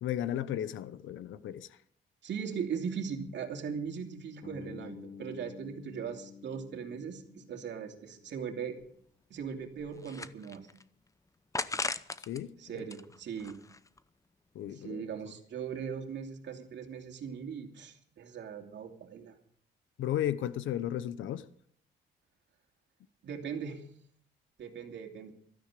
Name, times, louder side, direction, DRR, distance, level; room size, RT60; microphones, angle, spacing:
voice 1, 0.0-1.7 12.3-12.8 14.5-15.0 20.0-21.5, left 11 dB, 75° left, 0.9 m, -34 dB
voice 2, 2.2-8.8 9.3-10.7 12.6-13.6 14.7-19.3 23.2-23.8 24.6-25.3, right 7 dB, 65° right, 2.8 m, -39 dB
Bass guitar, 4.4-8.5, left 6 dB, 35° left, 4.7 m, -50 dB
sound 1, 8.4-8.5 8.8-8.9 9.5-10.8 11.5-12.4 12.8-14.0, left 3 dB, 15° left, 0.7 m, -38 dB
16.0 x 13.0 x 5.1 m
cardioid pair, 90°, 20 cm